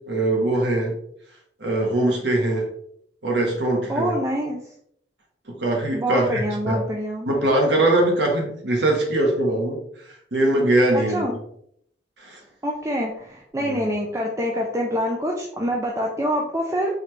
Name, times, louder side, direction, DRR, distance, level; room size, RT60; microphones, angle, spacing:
voice 1, 0.1-0.9 1.6-2.7 3.2-4.1 5.5-6.8 7.3-9.8 10.3-11.2 12.2-12.4 13.6-13.8, right 1 dB, 85° right, 1 dB, 1.1 m, -21 dB
voice 2, 3.9-4.6 5.9-7.3 10.9-11.4 12.6-17.0, equal, 15° right, -1 dB, 0.4 m, -26 dB
3.9 x 3.2 x 3.1 m, 0.69 s
head